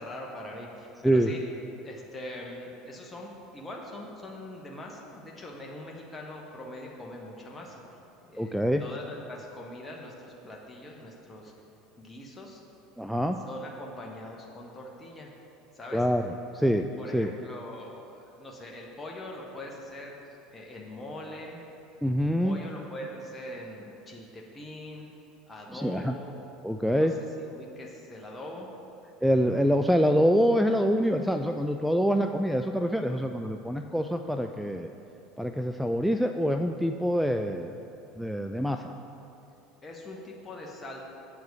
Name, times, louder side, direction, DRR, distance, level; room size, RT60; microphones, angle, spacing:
voice 1, 0.0-1.4 1.8-7.8 8.2-11.5 12.0-12.6 13.4-15.3 15.7-16.1 17.0-21.6 22.4-25.1 25.5-26.3 26.9-27.1 27.4-28.7 39.8-41.0, left 1 dB, 20° left, -2 dB, 1.1 m, -42 dB
voice 2, 8.4-8.8 13.0-13.4 15.9-16.9 17.1-17.3 22.0-22.6 25.7-26.1 26.6-27.1 29.2-34.9 35.4-37.7 38.2-38.9, equal, ahead, 6 dB, 0.3 m, -25 dB
7.7 x 4.6 x 6.8 m, 2.7 s
figure-of-eight pair, 70°, 0 cm